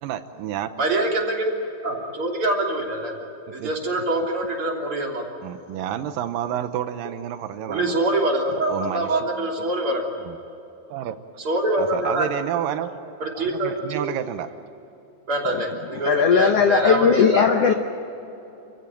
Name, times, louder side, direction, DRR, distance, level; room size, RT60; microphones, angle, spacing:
voice 1, 0.0-0.7 3.6-3.7 5.4-8.0 8.5-9.1 10.3-10.4 10.9-11.2 11.8-14.5, right 10 dB, 80° right, 10 dB, 2.5 m, -30 dB
voice 2, 0.8-5.3 7.7-10.0 11.4-12.3 13.2-14.1 15.3-17.5, right 2 dB, 40° right, 0 dB, 3.8 m, -25 dB
voice 3, 16.0-17.7, left 7 dB, 70° left, 5 dB, 1.5 m, -17 dB
29.0 x 15.5 x 9.1 m, 2.9 s
omnidirectional pair, 4.1 m